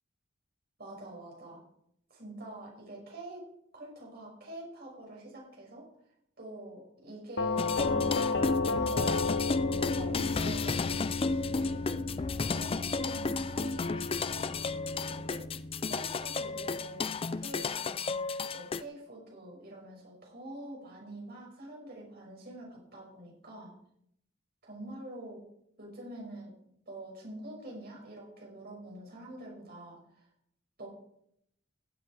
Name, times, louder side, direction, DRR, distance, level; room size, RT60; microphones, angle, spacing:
voice 1, 0.8-1.6 2.1-3.5 3.7-5.9 6.4-15.4 15.8-17.1 17.4-18.3 18.5-23.7 24.6-25.4 25.8-26.5 26.9-30.2 30.8-30.9, right 1 dB, 55° right, -2 dB, 5.6 m, -46 dB
Doorbell, 7.4-16.2, left 3 dB, 65° left, 0.8 m, -33 dB
sound 1, 7.6-18.8, left 4 dB, 30° left, 0.4 m, -33 dB
16.5 x 7.9 x 4.8 m, 0.72 s
head